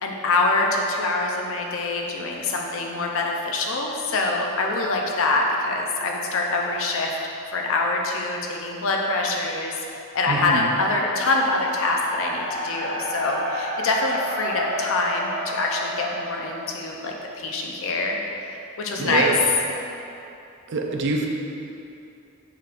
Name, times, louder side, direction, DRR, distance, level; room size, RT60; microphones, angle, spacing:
voice 1, 0.0-7.2 7.5-9.8 10.1-18.2 18.5-19.3, left 2 dB, 60° left, 0 dB, 0.5 m, -25 dB
voice 2, 10.3-10.6 19.0-19.4 20.7-21.3, right 3 dB, 55° right, 1 dB, 0.4 m, -25 dB
sound 1, 11.2-17.3, equal, 15° left, 1.0 m, -32 dB
5.6 x 3.6 x 2.5 m, 2.7 s
head